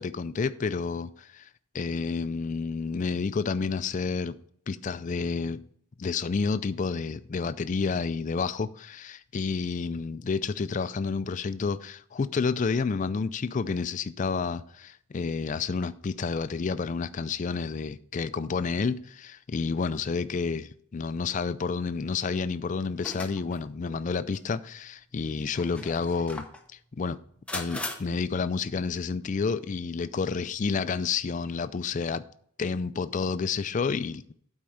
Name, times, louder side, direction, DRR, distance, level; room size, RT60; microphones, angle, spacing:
voice 1, 0.0-1.5 1.7-4.4 4.7-5.6 6.0-26.5 26.9-27.2 27.5-32.2 32.6-34.3, left 5 dB, 35° left, 0.3 m, -30 dB
sound 1, 23.0-23.6 24.3-24.4 25.4-26.6 27.5-28.0, left 2 dB, 5° left, 0.6 m, -38 dB
8.7 x 4.4 x 6.4 m
head